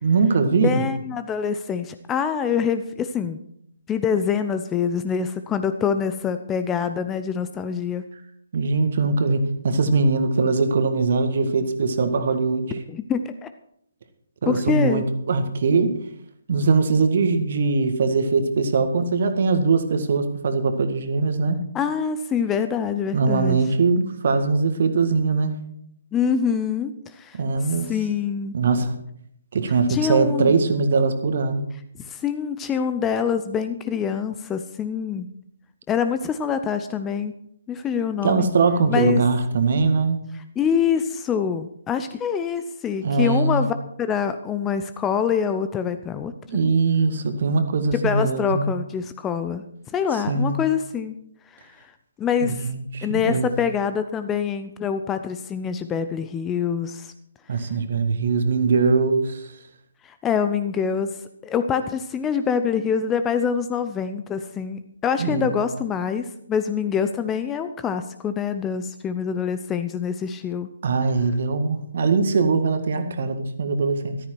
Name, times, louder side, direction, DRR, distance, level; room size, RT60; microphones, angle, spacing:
voice 1, 0.0-0.8 8.5-12.7 14.4-15.9 16.5-21.6 23.1-25.5 27.3-27.9 28.5-28.9 29.5-31.6 38.2-40.2 43.0-43.7 46.5-48.7 50.3-50.6 52.4-53.5 57.5-59.5 65.2-65.6 70.8-74.2, right 4 dB, 45° right, 8 dB, 1.8 m, -21 dB
voice 2, 0.6-3.4 3.9-8.0 12.9-13.5 14.5-15.0 21.7-23.6 26.1-27.4 27.9-28.5 29.9-30.5 32.0-35.3 35.9-37.3 37.7-38.5 38.9-39.2 40.6-46.3 47.9-49.6 49.9-51.2 51.5-51.9 52.2-52.6 53.0-57.1 60.0-61.2 61.4-70.7, left 7 dB, 15° left, 10 dB, 0.6 m, -25 dB
14.0 x 13.5 x 4.6 m, 0.70 s
figure-of-eight pair, 135°, 0 cm